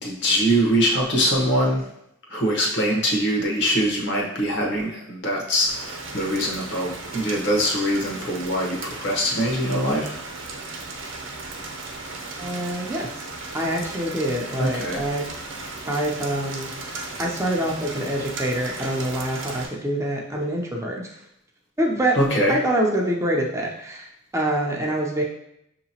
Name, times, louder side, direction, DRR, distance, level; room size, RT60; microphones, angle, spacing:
voice 1, 0.0-1.8 2.3-10.2 14.6-15.0 22.2-22.6, equal, 60° left, -1 dB, 1.0 m, -23 dB
Rain, 5.7-19.7, right 3 dB, 75° right, 0.7 m, -36 dB
voice 2, 12.4-13.3 13.5-15.3 15.9-16.7 17.2-21.2 21.8-22.2 22.5-25.2, right 1 dB, 15° right, -2 dB, 0.5 m, -25 dB
6.2 x 2.9 x 2.8 m, 0.78 s
head